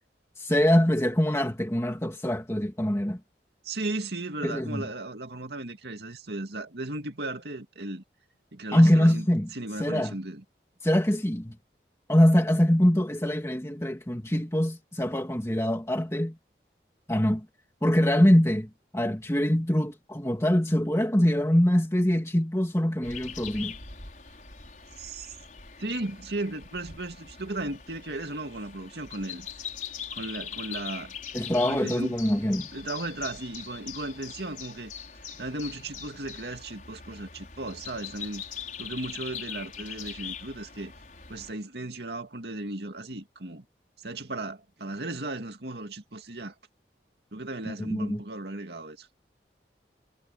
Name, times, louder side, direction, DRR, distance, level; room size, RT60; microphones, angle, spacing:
voice 1, 0.4-3.2 4.4-4.9 8.7-9.5 9.8-10.1 10.8-11.6 12.1-16.4 17.1-17.5 17.8-23.7 31.3-32.7 47.7-48.2, equal, 15° left, 2.1 m, -24 dB
voice 2, 3.6-8.0 8.5-9.3 9.5-10.4 25.0-25.3 25.8-29.5 30.1-31.1 31.6-32.2 32.7-34.9 35.4-38.4 38.8-40.9 41.3-43.7 44.0-46.5 47.3-49.1, right 2 dB, 70° right, 2.2 m, -36 dB
sound 1, 23.0-41.5, left 7 dB, 45° left, 6.1 m, -42 dB
head